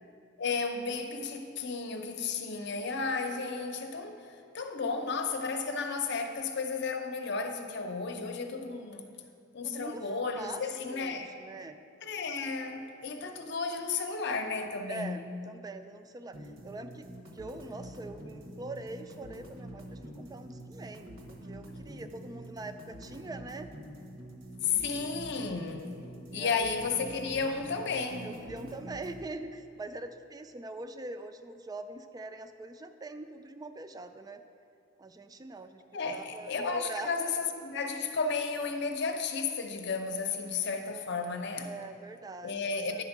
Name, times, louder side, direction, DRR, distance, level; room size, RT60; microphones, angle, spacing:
voice 1, 0.4-9.1 9.5-11.3 12.0-15.2 24.6-26.0 26.3-28.4 35.9-41.7 42.4-43.0, left 4 dB, 60° left, 5 dB, 0.7 m, -33 dB
voice 2, 9.6-10.1 10.4-11.8 14.9-17.1 17.3-23.7 24.6-25.2 26.3-26.6 28.2-34.4 35.0-37.3 41.6-43.0, right 2 dB, 20° right, 9 dB, 0.3 m, -43 dB
sound 1, 16.3-29.3, right 1 dB, 75° right, 1.0 m, -46 dB
10.0 x 4.3 x 5.9 m, 2.5 s
head